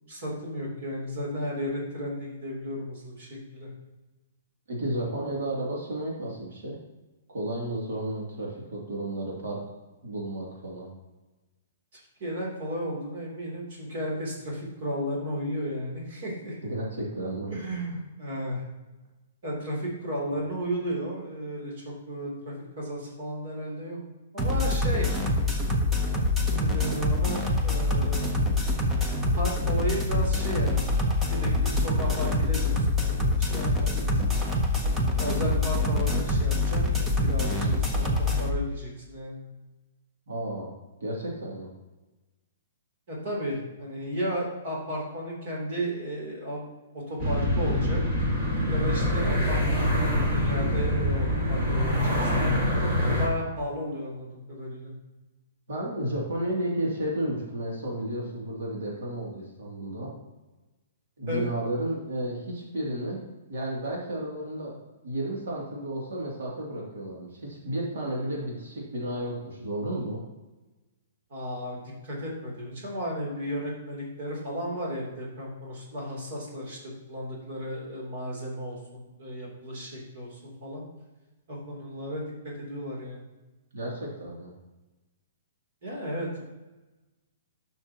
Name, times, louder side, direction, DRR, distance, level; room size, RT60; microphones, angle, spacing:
voice 1, 0.1-3.7 11.9-16.6 17.5-18.6 19.4-24.0 24.3-25.1 26.6-28.3 29.3-30.9 31.3-34.3 35.2-39.4 43.1-46.6 46.9-48.0 48.7-52.9 53.2-54.9 61.3-61.5 71.3-76.8 77.0-80.8 81.5-83.3 85.8-86.4, equal, 45° right, -3 dB, 2.9 m, -34 dB
voice 2, 4.7-6.8 7.3-9.6 10.0-10.9 16.6-17.5 40.3-40.7 41.0-41.7 48.7-49.0 55.7-60.1 61.2-64.8 65.0-70.2 83.7-84.5, right 1 dB, 75° right, -3 dB, 2.5 m, -32 dB
sound 1, 24.4-38.5, left 2 dB, 5° right, 0.6 m, -25 dB
sound 2, 47.2-53.3, left 1 dB, 20° right, 1.8 m, -25 dB
11.5 x 5.8 x 2.9 m, 1.1 s
hypercardioid pair, 175°, 0 cm